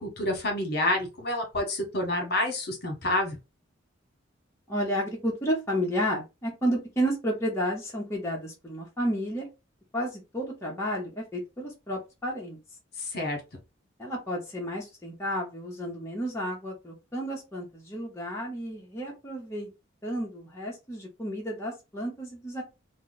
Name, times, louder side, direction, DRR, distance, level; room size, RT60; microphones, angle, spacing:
voice 1, 0.0-3.4 13.0-13.4, left 1 dB, 50° left, 2 dB, 1.0 m, -28 dB
voice 2, 4.7-9.5 9.9-12.6 14.0-19.7 20.0-22.6, equal, 15° left, -3 dB, 0.7 m, -31 dB
2.8 x 2.0 x 3.9 m, 0.26 s
head